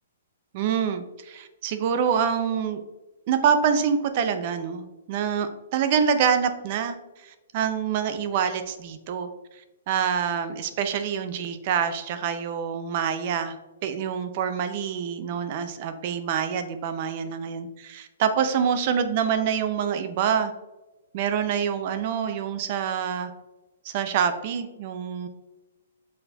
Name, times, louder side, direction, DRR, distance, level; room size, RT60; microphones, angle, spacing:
voice 1, 0.5-2.8 3.3-9.3 9.9-13.6 13.8-20.5 21.1-23.3 23.8-25.3, right 7 dB, 30° right, 9 dB, 0.3 m, -26 dB
4.2 x 4.0 x 2.2 m, 1.1 s
hypercardioid pair, 175°, 0 cm